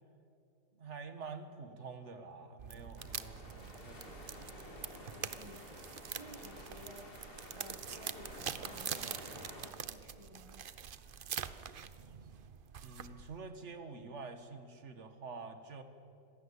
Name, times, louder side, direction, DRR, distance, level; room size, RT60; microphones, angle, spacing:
voice 1, 0.8-4.5 12.8-15.8, right 4 dB, 40° right, 8 dB, 1.8 m, -48 dB
sound 1, 2.6-13.4, right 7 dB, 85° right, 0.4 m, -45 dB
sound 2, 3.0-9.7, left 1 dB, 30° left, 3.1 m, -51 dB
voice 2, 4.9-5.7 6.1-7.2 7.5-10.6, right 1 dB, 15° right, 6 dB, 1.6 m, -55 dB
25.5 x 17.0 x 8.5 m, 2.7 s
omnidirectional pair, 2.0 m